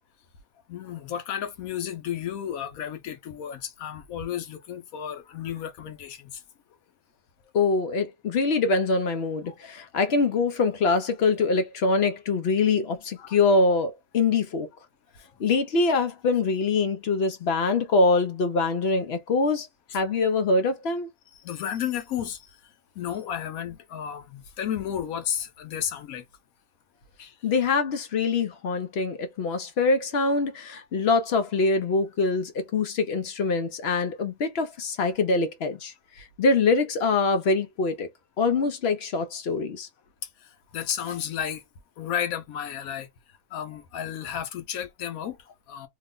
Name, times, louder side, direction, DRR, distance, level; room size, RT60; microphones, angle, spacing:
voice 1, 0.7-6.4 9.4-9.8 13.2-13.4 21.3-26.3 27.2-27.4 40.2-41.6 42.0-45.9, left 9 dB, 85° left, 1.2 m, -33 dB
voice 2, 7.5-14.7 15.4-19.7 19.9-21.1 27.4-38.1 38.4-39.9, left 3 dB, 60° left, 0.8 m, -24 dB
3.0 x 2.1 x 3.7 m
omnidirectional pair, 1.4 m